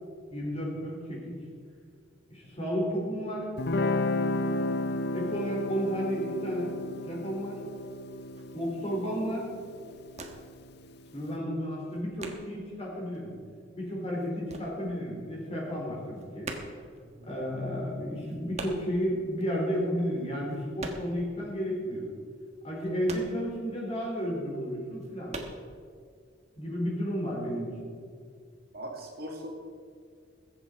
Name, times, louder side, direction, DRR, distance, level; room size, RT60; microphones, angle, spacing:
voice 1, 0.3-1.2 2.3-3.5 5.1-6.7 7.0-7.6 8.5-9.5 11.1-13.3 13.7-16.5 17.2-22.1 22.6-25.4 26.6-27.9, equal, 35° left, -3 dB, 4.2 m, -32 dB
Guitar, 3.6-10.7, left 2 dB, 55° left, 0.6 m, -33 dB
sound 1, 8.3-8.6 9.1-9.4 9.7-10.6 10.9-12.8 13.1-15.4 15.6-21.3 21.6-21.7 22.1-24.0 24.4-24.5 24.9-25.6, right 2 dB, 35° right, 1.4 m, -43 dB
voice 2, 17.0-17.3 28.7-29.5, equal, 55° right, 0 dB, 2.2 m, -41 dB
21.5 x 8.1 x 4.6 m, 2.2 s
head